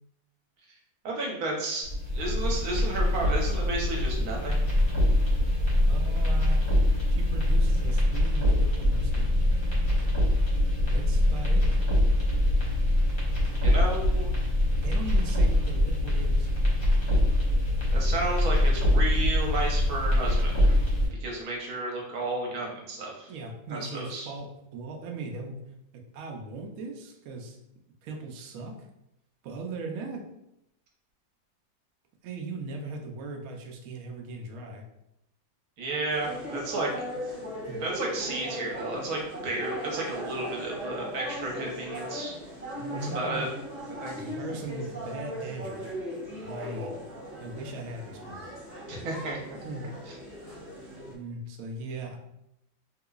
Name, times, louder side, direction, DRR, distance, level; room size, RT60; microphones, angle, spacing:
voice 1, 1.0-1.9 2.1-4.6 13.6-14.3 17.9-20.7 21.2-23.3 23.7-24.3 35.8-36.9 37.8-42.3 43.0-43.5 44.0-44.1 48.9-49.6, right 2 dB, 60° right, -1 dB, 1.1 m, -32 dB
sound 1, 1.8-21.1, left 1 dB, 40° left, 0.9 m, -24 dB
voice 2, 5.8-6.7 7.1-9.4 10.9-11.8 14.8-16.5 23.3-25.7 25.9-27.6 28.0-28.8 29.4-30.3 32.2-34.8 37.6-37.8 42.7-43.6 44.1-45.9 46.4-46.9 47.3-48.5 49.6-50.0 51.1-52.2, right 2 dB, 75° right, 1 dB, 0.8 m, -39 dB
sound 2, 36.1-51.1, equal, 10° left, 0.7 m, -38 dB
3.6 x 2.8 x 2.3 m, 0.85 s
omnidirectional pair, 2.1 m